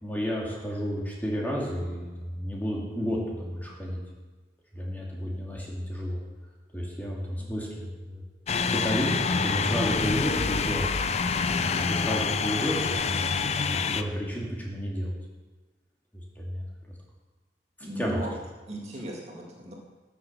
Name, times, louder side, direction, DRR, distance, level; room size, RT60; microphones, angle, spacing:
voice 1, 0.0-4.0 4.7-6.2 6.7-8.2 8.7-11.0 11.4-15.2 16.4-16.7 18.0-18.2, equal, 10° left, -3 dB, 2.2 m, -32 dB
sound 1, 8.5-14.0, left 5 dB, 35° left, 0.5 m, -27 dB
voice 2, 17.8-18.3 18.7-19.7, right 1 dB, 35° right, -1 dB, 2.2 m, -36 dB
14.0 x 7.2 x 6.5 m, 1.3 s
head